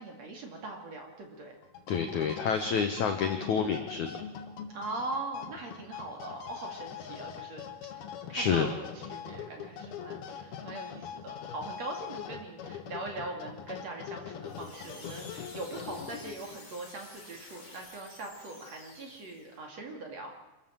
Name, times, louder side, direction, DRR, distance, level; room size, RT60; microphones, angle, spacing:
voice 1, 0.0-1.6 4.7-7.7 8.3-20.3, right 2 dB, 45° right, 2 dB, 3.0 m, -41 dB
sound 1, 1.6-16.6, left 8 dB, 65° left, 3.1 m, -43 dB
voice 2, 1.9-4.2 8.3-8.7, left 6 dB, 85° left, 6 dB, 1.7 m, -28 dB
sound 2, 14.4-19.6, left 2 dB, 25° left, 5.1 m, -51 dB
26.0 x 14.0 x 7.5 m, 1.0 s
omnidirectional pair, 5.1 m